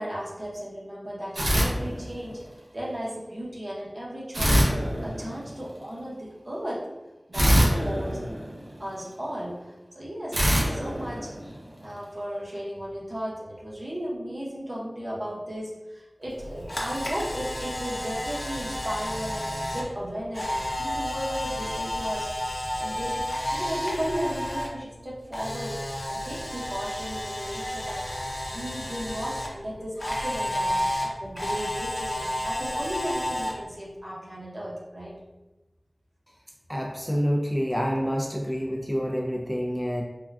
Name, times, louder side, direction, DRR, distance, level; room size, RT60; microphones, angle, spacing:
voice 1, 0.0-2.4 2.7-4.6 5.0-6.9 7.3-8.2 8.8-22.3 22.8-28.1 28.5-30.8 31.2-35.1, equal, 50° right, -6 dB, 0.8 m, -35 dB
sound 1, 1.3-2.5 4.3-5.7 7.3-9.0 10.3-11.9, equal, 85° right, 0.6 m, -24 dB
Camera, 16.3-24.7 25.0-29.5 30.0-33.5, equal, 50° left, 0.6 m, -31 dB
voice 2, 36.7-40.0, equal, ahead, -2 dB, 0.3 m, -27 dB
3.5 x 2.1 x 2.3 m, 1.1 s
wide cardioid pair, 45°, 0 cm